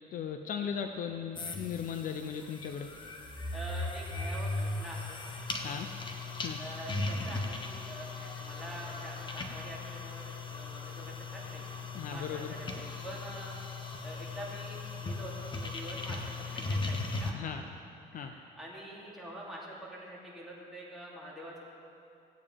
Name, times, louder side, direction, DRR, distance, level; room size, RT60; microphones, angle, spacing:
voice 1, 0.1-2.9 5.6-5.9 6.3-6.6 11.9-12.5 17.3-17.6 18.1-18.3, left 7 dB, 55° left, 6 dB, 0.6 m, -37 dB
sound 1, 1.4-17.3, left 3 dB, 30° left, 1.0 m, -38 dB
voice 2, 3.5-5.2 6.6-11.7 12.1-13.5 14.0-17.4 18.1-21.6, right 1 dB, ahead, -7 dB, 2.8 m, -45 dB
16.5 x 8.6 x 3.5 m, 2.7 s
cardioid pair, 110°, 17 cm